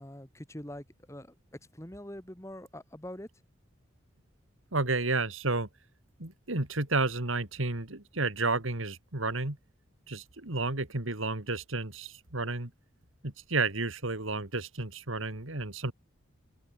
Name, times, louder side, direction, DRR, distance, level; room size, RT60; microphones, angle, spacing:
voice 1, 0.0-1.4 1.7-3.3, left 1 dB, 15° left, 1.9 m, -44 dB
voice 2, 4.7-5.7 6.2-9.6 10.1-12.7 13.2-15.9, right 3 dB, 80° right, 3.0 m, -31 dB
open air
head